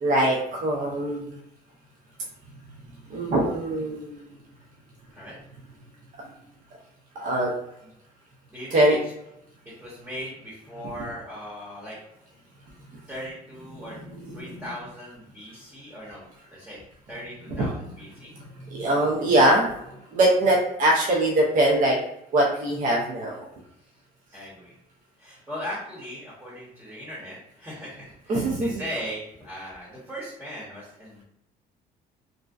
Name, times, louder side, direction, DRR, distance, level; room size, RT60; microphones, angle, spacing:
voice 1, 0.0-1.4 3.1-4.2 7.2-7.5 8.7-9.0 17.6-17.7 18.7-19.7 20.1-22.0 22.3-23.4 28.3-28.7, right 1 dB, 50° right, -2 dB, 0.5 m, -22 dB
voice 2, 8.5-9.1 9.6-12.0 13.1-14.0 14.3-16.8 17.1-18.4 24.3-24.7 25.2-31.2, equal, 15° right, -6 dB, 0.9 m, -38 dB
2.6 x 2.1 x 2.3 m, 0.79 s
cardioid pair, 110°, 17 cm